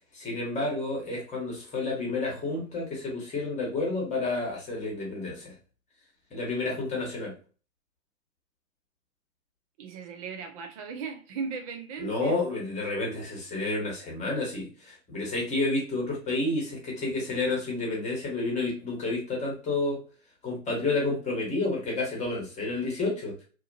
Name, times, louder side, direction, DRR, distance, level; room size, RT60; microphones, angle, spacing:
voice 1, 0.1-5.6 6.3-7.3 12.0-20.0 20.4-23.4, left 2 dB, 15° left, 1.3 m, -30 dB
voice 2, 9.8-12.4, right 5 dB, 25° right, 0.4 m, -37 dB
2.8 x 2.4 x 2.6 m
hypercardioid pair, 120°, 41 cm